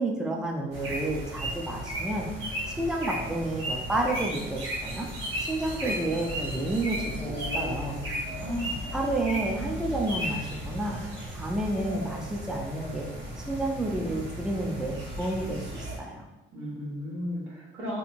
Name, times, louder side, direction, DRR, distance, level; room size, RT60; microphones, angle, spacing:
voice 1, 0.0-2.3 2.8-5.1 5.5-7.9 8.9-11.0 11.3-13.1 13.4-16.2, right 1 dB, 5° right, 0 dB, 0.5 m, -30 dB
sound 1, 0.7-16.0, right 1 dB, 70° right, 1.4 m, -35 dB
voice 2, 7.2-8.9 16.5-18.0, equal, 90° right, -6 dB, 1.3 m, -35 dB
3.3 x 2.9 x 2.6 m, 1.0 s
cardioid pair, 90°, 20 cm